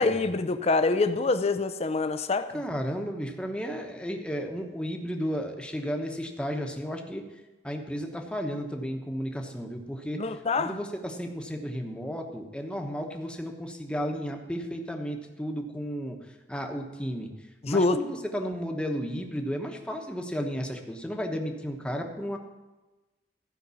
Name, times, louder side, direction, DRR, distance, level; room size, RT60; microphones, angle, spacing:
voice 1, 0.0-2.6 10.2-10.8 17.6-18.0, left 3 dB, 35° left, 0.5 m, -25 dB
voice 2, 2.5-7.2 7.6-10.2 10.6-16.2 16.5-17.3 17.7-22.4, equal, 5° left, 1.0 m, -33 dB
13.5 x 5.3 x 6.9 m
head